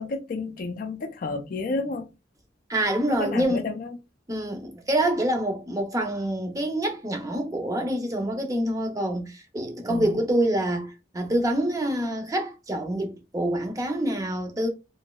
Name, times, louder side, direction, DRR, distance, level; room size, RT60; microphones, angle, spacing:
voice 1, 0.0-2.1 3.1-4.0 9.9-10.2, left 3 dB, 50° left, 0.4 m, -31 dB
voice 2, 2.7-3.7 4.3-14.7, right 1 dB, 20° right, 0.6 m, -26 dB
3.0 x 2.7 x 2.3 m
head